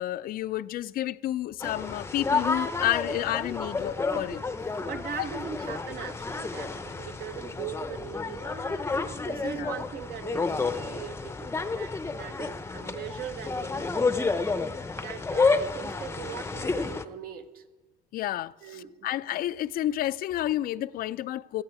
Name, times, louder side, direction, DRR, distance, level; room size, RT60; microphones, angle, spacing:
voice 1, 0.0-4.4 5.2-5.3 9.6-9.7 18.1-21.6, left 13 dB, 60° left, 0.4 m, -30 dB
sound 1, 1.6-17.0, left 4 dB, 15° left, 0.6 m, -30 dB
voice 2, 4.8-14.4 15.0-17.6 18.6-19.1, right 8 dB, 65° right, 1.1 m, -40 dB
18.0 x 13.0 x 4.8 m
cardioid pair, 110°, 17 cm